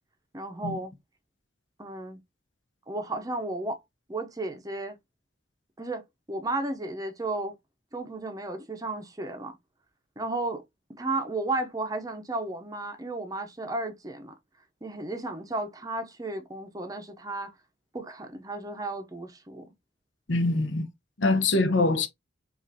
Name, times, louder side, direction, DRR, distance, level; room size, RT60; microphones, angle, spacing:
voice 1, 0.3-0.9 1.8-2.2 2.9-3.8 4.1-5.0 5.8-7.6 7.9-9.5 10.2-10.6 10.9-14.3 14.8-17.5 17.9-19.6, right 2 dB, 20° right, 0.6 m, -33 dB
voice 2, 20.3-20.9 21.2-22.1, left 2 dB, 75° left, 0.8 m, -24 dB
5.1 x 2.5 x 2.7 m
head